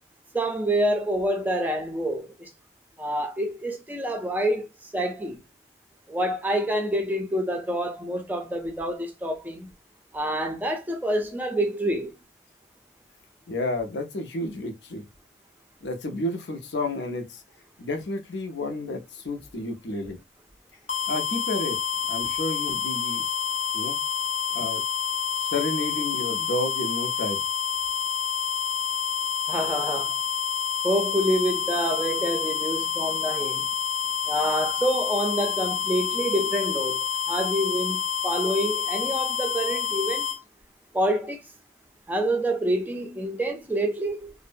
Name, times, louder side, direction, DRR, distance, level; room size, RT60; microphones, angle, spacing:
voice 1, 0.3-2.5 3.0-5.4 6.1-9.7 10.1-12.1 29.5-30.2 30.8-33.7 34.3-40.2 40.9-41.4 42.1-44.3, right 1 dB, 10° right, 0.4 m, -27 dB
voice 2, 13.5-15.1 15.8-17.4 17.8-20.2 21.1-21.8 22.1-23.2 23.7-24.0 24.5-24.8 25.4-27.4, left 2 dB, 80° left, 0.6 m, -31 dB
sound 1, 20.9-40.4, left 7 dB, 35° left, 0.6 m, -28 dB
2.6 x 2.0 x 2.4 m
head